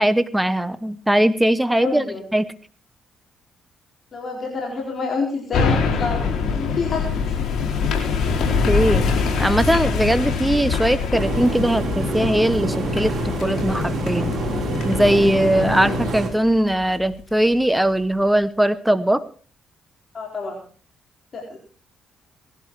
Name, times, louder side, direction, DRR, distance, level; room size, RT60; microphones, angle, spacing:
voice 1, 0.0-2.0 2.3-2.5 8.7-9.1 9.4-14.3 14.8-19.2, right 1 dB, 5° right, 13 dB, 0.9 m, -20 dB
voice 2, 1.6-2.2 4.1-7.1 20.1-20.6 21.3-21.6, left 4 dB, 40° left, 0 dB, 4.3 m, -28 dB
sound 1, 5.5-17.0 17.4-17.5, left 4 dB, 65° left, 4.4 m, -25 dB
sound 2, 5.8-16.1, left 7 dB, 80° left, 2.6 m, -29 dB
sound 3, 11.2-16.3, right 4 dB, 55° right, 4.4 m, -27 dB
19.0 x 11.5 x 4.7 m, 0.42 s
cardioid pair, 90°, 0 cm